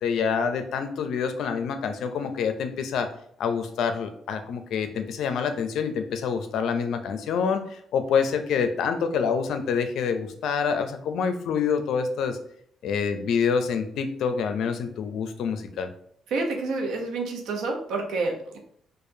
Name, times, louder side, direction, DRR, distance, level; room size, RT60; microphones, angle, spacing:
voice 1, 0.0-3.1 3.4-12.4 12.8-15.9, left 6 dB, 75° left, 8 dB, 0.5 m, -27 dB
voice 2, 16.3-18.6, right 3 dB, 80° right, 2 dB, 0.8 m, -28 dB
4.7 x 2.4 x 2.7 m, 0.65 s
cardioid pair, 90°, 0 cm